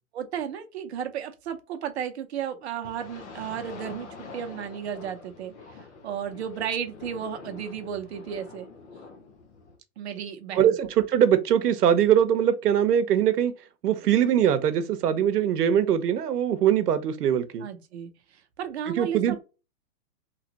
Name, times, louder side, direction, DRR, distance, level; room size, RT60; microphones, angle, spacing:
voice 1, 0.1-5.5 6.0-8.7 10.0-10.9 17.6-19.4, right 8 dB, 45° right, 0.7 m, -34 dB
sound 1, 2.8-9.8, left 4 dB, 50° left, 0.7 m, -45 dB
voice 2, 10.5-13.5 13.8-17.7 18.9-19.4, right 9 dB, 80° right, 0.8 m, -22 dB
2.9 x 2.4 x 2.8 m
hypercardioid pair, 155°, 46 cm